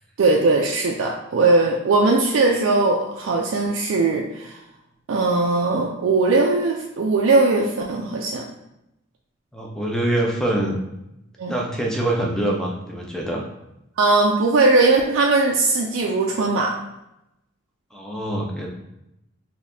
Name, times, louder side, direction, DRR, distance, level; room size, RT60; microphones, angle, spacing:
voice 1, 0.2-4.5 5.1-8.5 11.4-11.5 14.0-16.8, right 3 dB, 80° right, 0 dB, 0.4 m, -19 dB
voice 2, 9.5-10.8 11.5-13.4 17.9-18.7, right 1 dB, 5° left, -1 dB, 0.5 m, -24 dB
4.0 x 2.8 x 2.6 m, 0.88 s
head